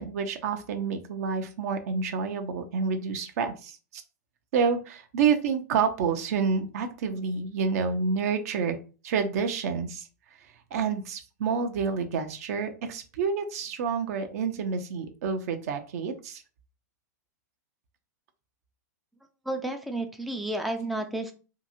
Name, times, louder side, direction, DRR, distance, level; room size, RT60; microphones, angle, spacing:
voice 1, 0.0-4.0 4.5-8.8 9.0-10.1 10.7-16.4, right 5 dB, 60° right, 7 dB, 0.6 m, -28 dB
voice 2, 19.5-21.3, right 1 dB, ahead, 5 dB, 0.3 m, -31 dB
2.8 x 2.6 x 2.5 m, 0.35 s
hypercardioid pair, 105°, 10 cm